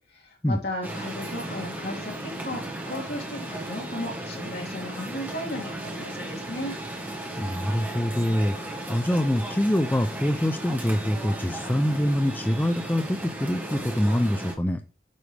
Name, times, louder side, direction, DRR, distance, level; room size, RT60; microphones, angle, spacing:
voice 1, 0.1-6.8, left 1 dB, 70° left, 2.6 m, -35 dB
sound 1, 0.8-14.5, right 1 dB, 10° right, 1.3 m, -35 dB
voice 2, 7.4-14.8, equal, 10° left, 0.5 m, -25 dB
9.5 x 5.1 x 3.4 m
head